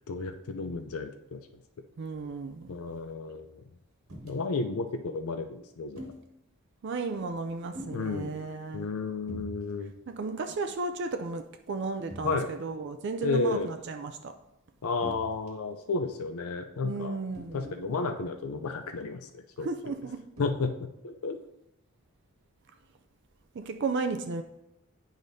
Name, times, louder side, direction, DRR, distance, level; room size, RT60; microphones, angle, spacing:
voice 1, 0.1-1.4 2.7-3.6 4.2-6.1 7.9-8.3 8.7-9.9 12.2-12.5 13.2-13.7 14.8-17.2 17.5-19.3 19.6-19.7 20.4-21.4, left 4 dB, 80° left, 0.5 m, -32 dB
voice 2, 2.0-2.8 6.8-8.9 10.1-14.3 16.8-17.9 19.6-20.3 23.5-24.4, right 4 dB, 55° right, 0.4 m, -34 dB
sound 1, 4.1-4.4 6.0-6.2 7.7-8.0 9.3-9.6 9.9-10.1 10.5-10.6 12.1-12.4 15.0-15.7 17.3-17.8 18.8-18.9 20.4-20.6, equal, 85° right, 1.7 m, -42 dB
9.1 x 5.0 x 2.7 m
head